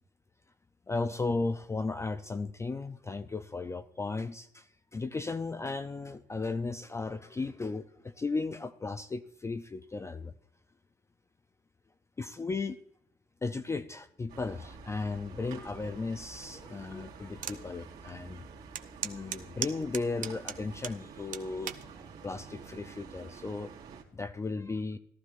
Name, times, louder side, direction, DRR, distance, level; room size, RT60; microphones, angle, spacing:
voice 1, 0.9-10.3 12.2-12.8 13.4-18.4 19.0-23.7 24.1-25.0, left 3 dB, 15° left, 9 dB, 0.4 m, -35 dB
sound 1, 14.3-24.0, right 5 dB, 70° right, 2.3 m, -49 dB
sound 2, 17.4-17.6 18.1-18.2 18.7-21.0 21.3-21.8 22.6-22.9, right 9 dB, 50° right, 0.7 m, -36 dB
15.0 x 12.5 x 2.5 m, 0.71 s
cardioid pair, 110°, 17 cm